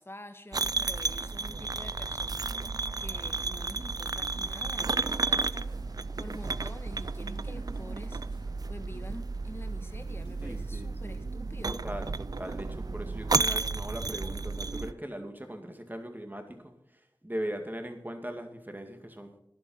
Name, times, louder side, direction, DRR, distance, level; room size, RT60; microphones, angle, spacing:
voice 1, 0.0-2.5 3.0-8.2 8.7-11.8, left 1 dB, 30° left, 8 dB, 1.4 m, -47 dB
sound 1, 0.5-14.9, right 3 dB, 55° right, 0.4 m, -32 dB
sound 2, 3.9-10.6, left 1 dB, 85° left, 3.7 m, -61 dB
voice 2, 10.4-11.2 11.6-19.4, equal, 25° right, 6 dB, 2.2 m, -39 dB
12.0 x 11.0 x 5.6 m, 0.75 s
wide cardioid pair, 45°, 8 cm